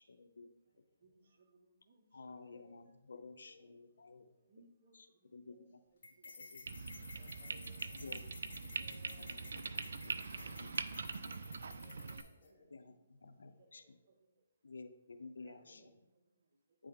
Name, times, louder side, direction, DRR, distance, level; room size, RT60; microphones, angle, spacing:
voice 1, 0.0-0.5 2.1-4.2 4.9-5.1 5.3-5.8 6.4-6.6 7.9-8.2 8.6-8.7 9.2-9.6 10.0-11.3 12.7-13.8 14.6-15.8 16.8-16.9, left 3 dB, 85° left, 8 dB, 0.5 m, -53 dB
voice 2, 0.6-2.8 3.9-4.0 4.5-7.4 12.2-13.0 13.5-14.7 15.4-16.9, right 2 dB, 50° right, 2 dB, 1.0 m, -71 dB
voice 3, 2.4-2.9 3.4-3.7 4.2-4.4 5.5-5.6 7.0-8.1 8.8-9.3 11.1-12.6 15.4-15.9, left 2 dB, 40° left, -2 dB, 1.7 m, -65 dB
sound 1, 6.0-12.5, left 4 dB, 60° left, 1.8 m, -54 dB
sound 2, 6.7-12.2, right 4 dB, 70° right, 0.4 m, -43 dB
8.5 x 3.4 x 3.5 m, 0.97 s
hypercardioid pair, 150°, 0 cm